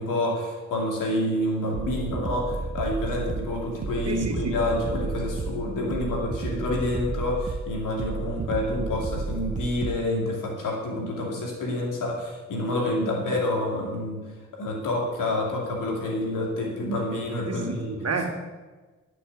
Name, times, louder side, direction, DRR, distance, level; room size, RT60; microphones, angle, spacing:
voice 1, 0.0-14.2 14.5-17.9, left 1 dB, 85° left, -1 dB, 2.8 m, -28 dB
sound 1, 1.7-10.1, right 4 dB, 25° right, 0.5 m, -32 dB
voice 2, 4.0-4.6 17.5-18.4, right 4 dB, 55° right, 3 dB, 2.3 m, -30 dB
10.5 x 6.8 x 7.4 m, 1.3 s
supercardioid pair, 50°, 31 cm